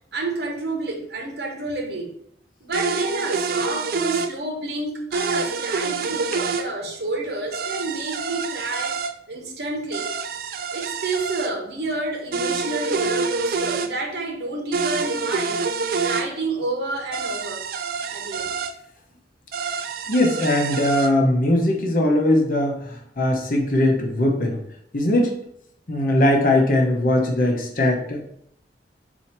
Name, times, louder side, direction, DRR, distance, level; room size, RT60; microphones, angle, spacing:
voice 1, 0.1-2.1 2.6-9.0 9.3-10.1 10.7-15.7 16.0-17.7 18.1-18.5, right 2 dB, 70° right, 1 dB, 0.8 m, -29 dB
sound 1, 2.7-4.3 5.1-6.7 7.5-9.1 9.9-11.5 12.3-13.9 14.7-16.2 17.1-18.7 19.5-21.1, right 4 dB, 55° right, 0.3 m, -27 dB
voice 2, 20.1-24.6 24.9-25.3 25.9-28.2, left 1 dB, 50° left, 1 dB, 0.8 m, -20 dB
4.3 x 2.8 x 4.3 m, 0.70 s
head